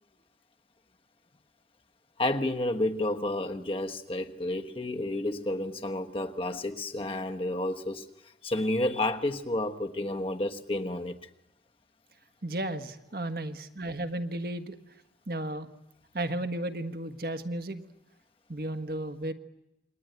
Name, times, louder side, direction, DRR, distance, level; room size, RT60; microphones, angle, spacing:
voice 1, 2.2-8.0 8.4-11.2, left 1 dB, 30° left, 1.2 m, -30 dB
voice 2, 12.4-14.7 15.3-15.7 16.1-17.8 18.5-19.3, right 1 dB, 55° right, 1.5 m, -34 dB
28.0 x 23.0 x 9.4 m
head